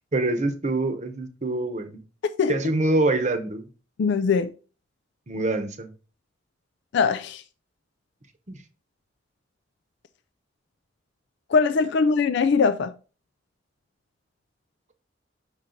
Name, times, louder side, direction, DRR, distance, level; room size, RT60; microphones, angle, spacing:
voice 1, 0.1-2.0 2.5-3.7 5.3-5.9 8.5-8.6, right 2 dB, 40° right, 0.9 m, -25 dB
voice 2, 4.0-4.5 6.9-7.4 11.5-12.9, left 5 dB, 65° left, 0.4 m, -21 dB
5.9 x 3.9 x 4.3 m
head